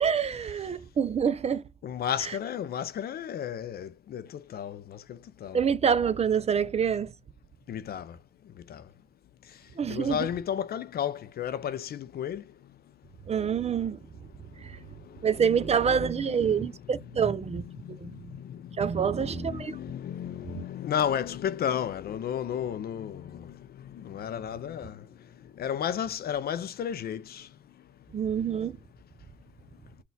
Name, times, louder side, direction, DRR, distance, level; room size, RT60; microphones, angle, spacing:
voice 1, 0.0-1.6 2.2-2.4 5.5-7.1 9.8-10.3 13.3-14.0 14.6-14.8 15.2-17.6 18.0-18.1 18.8-19.8 28.1-28.7, right 7 dB, 35° right, 0.4 m, -26 dB
voice 2, 1.8-5.6 7.7-8.2 8.7-8.8 9.9-12.5 15.1-15.3 16.5-16.7 17.8-18.8 19.2-25.1 25.6-27.5, left 9 dB, 50° left, 0.4 m, -33 dB
3.9 x 2.3 x 3.9 m
cardioid pair, 90°, 20 cm